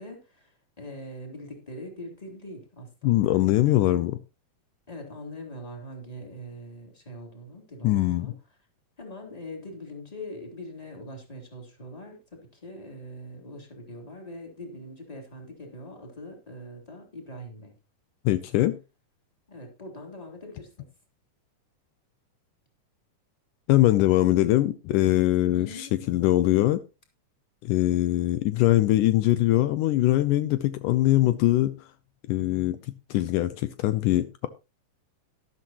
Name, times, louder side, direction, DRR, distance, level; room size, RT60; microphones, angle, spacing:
voice 1, 0.0-3.2 4.9-8.3 9.0-17.7 19.5-20.9 25.5-26.1, left 1 dB, 10° left, 3.3 m, -42 dB
voice 2, 3.0-4.2 7.8-8.3 18.3-18.8 23.7-26.8 27.6-31.9 32.3-34.5, left 15 dB, 80° left, 2.2 m, -22 dB
12.5 x 12.5 x 3.0 m
omnidirectional pair, 3.8 m